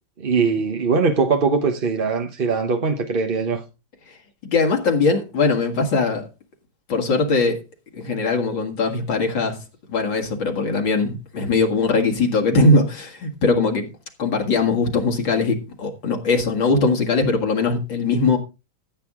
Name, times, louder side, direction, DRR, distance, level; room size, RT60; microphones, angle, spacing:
voice 1, 0.2-3.6, right 4 dB, 35° right, 0.9 m, -21 dB
voice 2, 4.4-6.2 6.9-7.6 7.9-9.6 9.9-13.9 14.2-18.4, left 3 dB, 70° left, 2.7 m, -20 dB
14.5 x 8.1 x 3.7 m
omnidirectional pair, 2.1 m